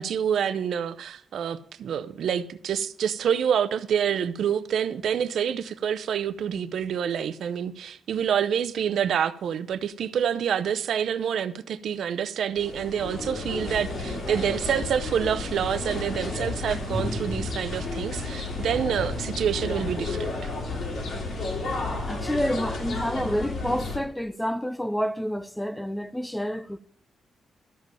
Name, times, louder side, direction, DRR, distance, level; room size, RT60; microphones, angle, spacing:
voice 1, 0.0-20.5, right 8 dB, 65° right, 0.6 m, -27 dB
sound 1, 12.6-24.0, left 2 dB, 55° left, 2.8 m, -32 dB
voice 2, 22.1-26.8, equal, 5° left, 0.4 m, -28 dB
13.0 x 5.3 x 7.6 m
wide cardioid pair, 175°, 0 cm